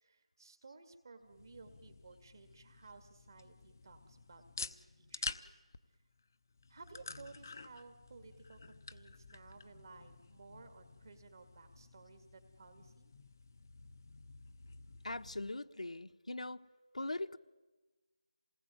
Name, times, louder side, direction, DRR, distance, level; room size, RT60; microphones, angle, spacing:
voice 1, 0.0-5.6 6.7-13.1, right 4 dB, 35° right, 8 dB, 2.1 m, -57 dB
sound 1, 1.2-15.5, left 4 dB, 30° left, 0.8 m, -50 dB
voice 2, 15.0-16.7 16.9-17.4, left 2 dB, 85° left, 8 dB, 1.3 m, -41 dB
27.5 x 19.5 x 9.3 m, 1.2 s
figure-of-eight pair, 175°, 4 cm